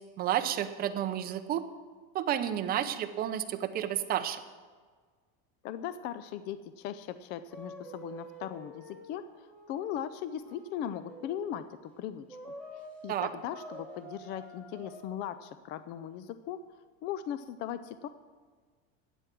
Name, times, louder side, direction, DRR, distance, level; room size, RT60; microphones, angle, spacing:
voice 1, 0.2-1.6 2.1-4.4 13.1-13.3, right 11 dB, 30° right, 8 dB, 0.8 m, -31 dB
voice 2, 5.6-16.6 17.0-18.1, left 10 dB, 35° left, 13 dB, 0.4 m, -39 dB
sound 1, 7.5-11.4 12.3-13.0 13.5-15.0, equal, 5° left, 2.4 m, -48 dB
13.0 x 9.1 x 6.0 m, 1.5 s
cardioid pair, 160°, 31 cm